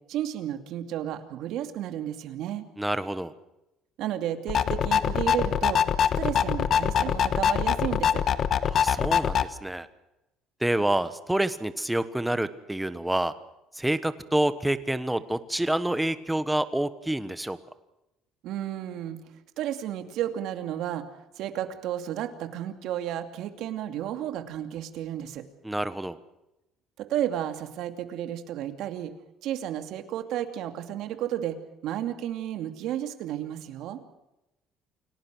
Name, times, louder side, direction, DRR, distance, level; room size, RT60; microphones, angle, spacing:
voice 1, 0.1-2.7 4.0-5.8 6.2-8.2 18.4-19.2 19.6-21.1 21.4-25.4 27.0-29.1 29.4-31.6 31.8-34.0, right 11 dB, 70° right, 7 dB, 2.5 m, -32 dB
voice 2, 2.8-3.3 8.7-9.9 10.6-13.3 13.7-17.6 25.6-26.2, right 1 dB, 5° right, 12 dB, 1.2 m, -27 dB
sound 1, 4.5-9.4, left 8 dB, 45° left, 1.2 m, -24 dB
29.0 x 18.0 x 6.3 m, 0.92 s
cardioid pair, 140°, 0 cm